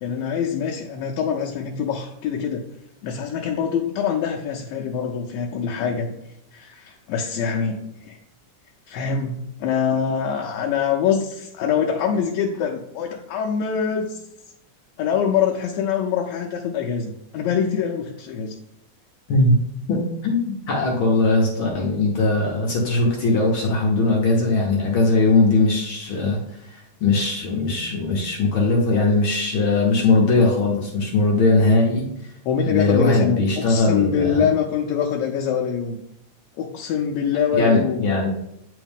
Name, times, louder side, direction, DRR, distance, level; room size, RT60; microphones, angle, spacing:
voice 1, 0.0-2.6 3.0-6.1 6.5-8.2 8.9-14.2 15.0-18.5 32.5-36.0 36.6-38.1, left 7 dB, 75° left, 1 dB, 1.8 m, -24 dB
voice 2, 19.9-26.4 26.7-32.3 32.6-34.4 37.6-38.3, left 3 dB, 60° left, -1 dB, 1.5 m, -20 dB
9.3 x 3.6 x 3.5 m, 0.79 s
omnidirectional pair, 3.4 m